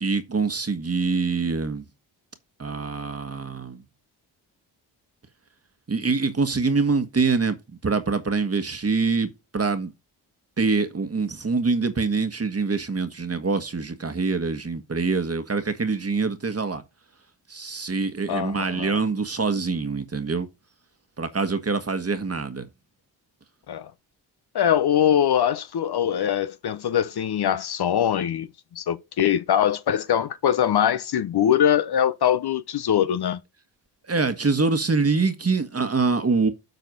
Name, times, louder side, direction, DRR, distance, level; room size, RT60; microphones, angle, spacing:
voice 1, 0.0-1.8 2.6-3.8 5.9-7.6 7.8-9.9 10.6-16.8 17.5-20.5 21.2-22.7 34.0-36.5, right 4 dB, 30° right, 1.5 m, -25 dB
voice 2, 18.3-19.0 23.7-23.9 24.5-28.5 28.7-33.4, left 9 dB, 55° left, 0.8 m, -22 dB
8.0 x 4.1 x 5.3 m
supercardioid pair, 45°, 46 cm